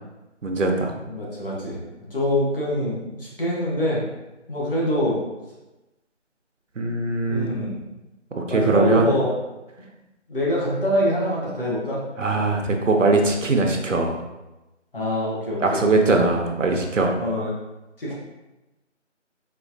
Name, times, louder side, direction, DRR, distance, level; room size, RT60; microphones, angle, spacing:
voice 1, 0.4-0.9 6.8-7.5 8.4-9.1 12.2-14.2 15.6-17.1, right 3 dB, 85° right, 2 dB, 0.7 m, -21 dB
voice 2, 1.1-1.8 2.1-4.1 4.5-5.2 7.3-7.7 8.4-9.4 10.3-12.0 14.9-15.8 17.2-17.5 18.0-18.1, equal, 45° left, -6 dB, 1.2 m, -24 dB
4.2 x 2.3 x 2.6 m, 1.0 s
figure-of-eight pair, 170°, 37 cm